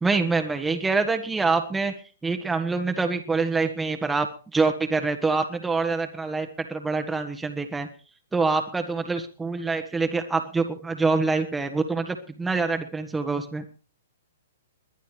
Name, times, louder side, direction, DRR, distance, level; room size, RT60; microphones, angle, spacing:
voice 1, 0.0-1.9 2.2-4.3 4.5-7.9 8.3-13.6, right 4 dB, 10° right, 5 dB, 1.4 m, -25 dB
22.0 x 10.0 x 3.4 m, 0.35 s
hypercardioid pair, 120°, 0 cm